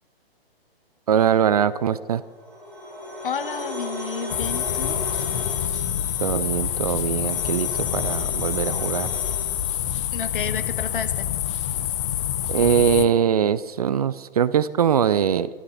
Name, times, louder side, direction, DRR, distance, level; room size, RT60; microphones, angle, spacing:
voice 1, 1.1-2.2 6.2-9.1 12.5-15.5, right 8 dB, 40° right, 17 dB, 0.5 m, -22 dB
sound 1, 2.2-9.7, left 1 dB, ahead, 5.0 m, -36 dB
voice 2, 3.2-5.0 10.1-11.3, left 6 dB, 60° left, 11 dB, 1.2 m, -31 dB
sound 2, 4.3-13.1, left 11 dB, 30° left, 0.8 m, -27 dB
13.5 x 13.0 x 6.0 m, 1.5 s
figure-of-eight pair, 125°, 31 cm